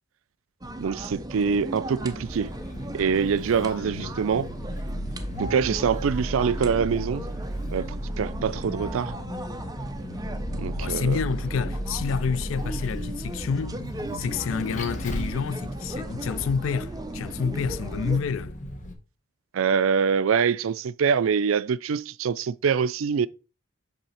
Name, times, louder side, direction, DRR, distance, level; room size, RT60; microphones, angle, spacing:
sound 1, 0.6-18.2, right 1 dB, 20° right, 0.6 m, -37 dB
voice 1, 0.8-2.5 2.9-4.5 5.4-7.2 7.7-7.9 8.2-9.1 10.6-11.2 19.5-23.3, right 6 dB, 85° right, 0.4 m, -24 dB
Vehicle, 2.0-18.9, equal, 40° left, 1.2 m, -35 dB
sound 2, 2.3-5.4 7.1-12.8 15.8-18.2, left 1 dB, 15° left, 1.3 m, -52 dB
voice 2, 3.6-4.1 10.8-13.8 14.1-18.6, left 6 dB, 75° left, 0.4 m, -29 dB
5.5 x 3.9 x 5.7 m
head